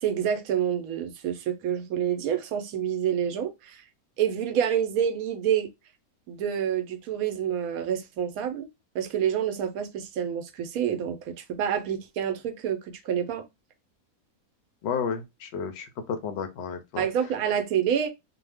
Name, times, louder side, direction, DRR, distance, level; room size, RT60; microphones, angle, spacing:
voice 1, 0.0-3.9 4.2-5.7 6.3-8.7 8.9-13.5 17.0-18.1, right 9 dB, 75° right, 1.0 m, -28 dB
voice 2, 14.8-17.1, left 6 dB, 65° left, 0.7 m, -32 dB
2.7 x 2.1 x 3.3 m
omnidirectional pair, 1.6 m